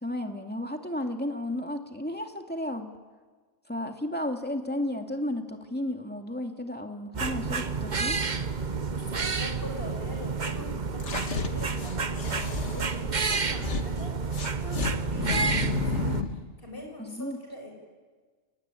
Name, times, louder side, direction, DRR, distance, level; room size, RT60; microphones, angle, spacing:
voice 1, 0.0-2.9 3.7-8.2 17.0-17.4, left 1 dB, 10° left, 3 dB, 2.4 m, -33 dB
sound 1, 7.1-16.2, right 4 dB, 40° right, 1.1 m, -30 dB
voice 2, 8.8-17.7, left 1 dB, 50° left, 1 dB, 7.8 m, -43 dB
sound 2, 11.0-13.8 14.3-16.4, left 5 dB, 75° left, 1.9 m, -32 dB
29.5 x 20.0 x 10.0 m, 1.4 s
omnidirectional pair, 1.2 m